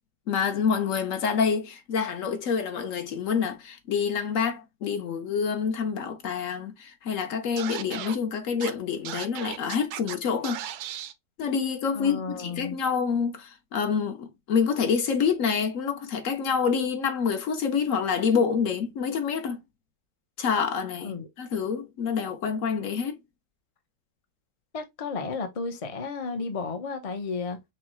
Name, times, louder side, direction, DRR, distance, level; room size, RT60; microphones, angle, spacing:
voice 1, 0.3-10.6 11.4-19.6 20.4-23.2, left 6 dB, 60° left, 1.0 m, -27 dB
Scratching (performance technique), 7.6-8.2 8.6-8.7 9.0-10.1 10.4-11.1, right 11 dB, 80° right, 1.1 m, -35 dB
voice 2, 11.9-12.8 21.0-21.3 24.7-27.6, left 4 dB, 35° left, 0.6 m, -33 dB
5.5 x 2.2 x 3.0 m
omnidirectional pair, 1.6 m